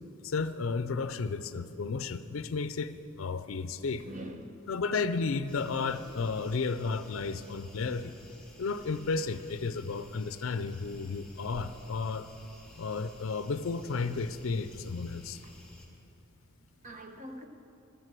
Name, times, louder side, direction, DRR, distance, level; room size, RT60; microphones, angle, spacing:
voice 1, 0.2-4.1 4.7-8.1 8.6-12.3 12.8-15.4, left 4 dB, 65° left, 0.5 m, -33 dB
voice 2, 4.0-4.7 15.4-15.5 16.6-17.5, right 1 dB, 35° right, 1.0 m, -45 dB
sound 1, 5.5-15.9, left 1 dB, 5° left, 2.2 m, -54 dB
13.0 x 9.7 x 7.6 m
head